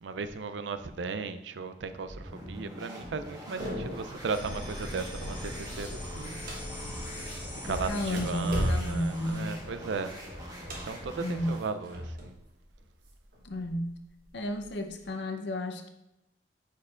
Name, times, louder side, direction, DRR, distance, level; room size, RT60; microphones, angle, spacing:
voice 1, 0.0-6.4 7.6-10.1 10.8-12.3, right 4 dB, 90° right, 11 dB, 0.4 m, -36 dB
sound 1, 2.1-11.7, equal, 20° right, 1.2 m, -44 dB
sound 2, 3.6-4.2 4.6-5.0 5.3-7.2 7.7-12.4 12.7-13.7 14.3-15.1, equal, 55° right, 1.2 m, -36 dB
sound 3, 4.3-9.4, left 1 dB, 30° left, 1.2 m, -41 dB
voice 2, 7.7-9.5 11.2-11.6 13.4-13.9 14.3-15.9, left 1 dB, 75° left, 5 dB, 0.7 m, -32 dB
9.5 x 4.5 x 2.4 m, 0.89 s
head